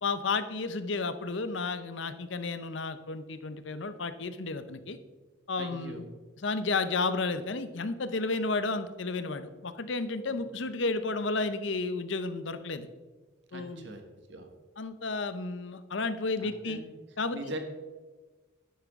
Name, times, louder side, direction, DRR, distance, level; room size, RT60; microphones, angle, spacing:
voice 1, 0.0-5.0 5.5-6.0 6.4-12.9 13.5-13.9 14.8-16.8 17.2-17.5, left 3 dB, 65° left, 12 dB, 0.7 m, -32 dB
voice 2, 5.6-6.2 10.3-10.4 13.5-14.0 14.3-14.5 16.4-16.9 17.3-17.6, right 1 dB, 60° right, 5 dB, 1.4 m, -41 dB
10.5 x 9.9 x 3.6 m, 1.3 s
head